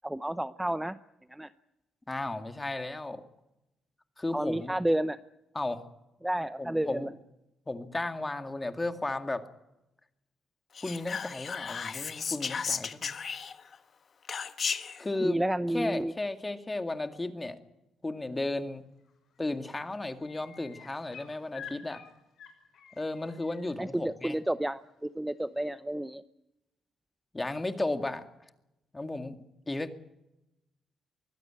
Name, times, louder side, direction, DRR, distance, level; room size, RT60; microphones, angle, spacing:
voice 1, 0.0-1.0 1.3-1.5 4.3-5.2 6.2-7.1 15.2-16.1 23.8-26.2, right 1 dB, 5° right, 12 dB, 0.7 m, -30 dB
voice 2, 2.1-3.2 4.2-4.8 5.5-5.8 6.6-7.1 7.7-9.5 10.8-13.2 15.0-15.4 15.7-17.6 18.0-18.8 19.4-22.0 23.0-24.4 27.3-28.3 28.9-29.4 29.7-30.0, left 2 dB, 15° left, 7 dB, 2.1 m, -34 dB
Whispering, 10.8-13.8 14.3-15.0, left 6 dB, 45° left, 1.3 m, -34 dB
sound 1, 19.0-19.4 19.7-23.7 25.4-25.5, left 7 dB, 65° left, 6.4 m, -49 dB
23.5 x 16.0 x 8.9 m, 0.92 s
cardioid pair, 90°, 0 cm